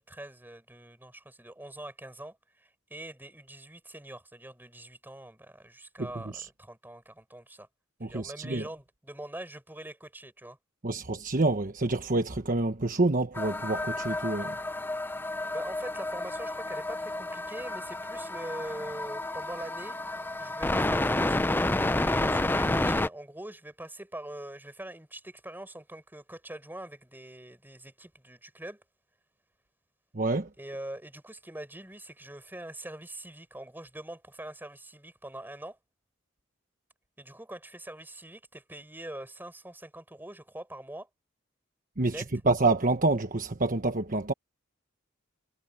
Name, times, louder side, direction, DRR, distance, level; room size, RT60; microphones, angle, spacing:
voice 1, 0.0-7.7 8.0-10.6 15.5-20.0 20.4-28.8 30.6-35.8 37.2-41.1 42.1-42.3, right 1 dB, 10° right, 4.7 m, -43 dB
voice 2, 8.0-8.6 10.8-14.5 30.1-30.5 42.0-42.1 42.5-44.3, right 2 dB, 40° right, 1.2 m, -27 dB
sound 1, 13.4-23.1, left 2 dB, 10° left, 0.5 m, -30 dB
head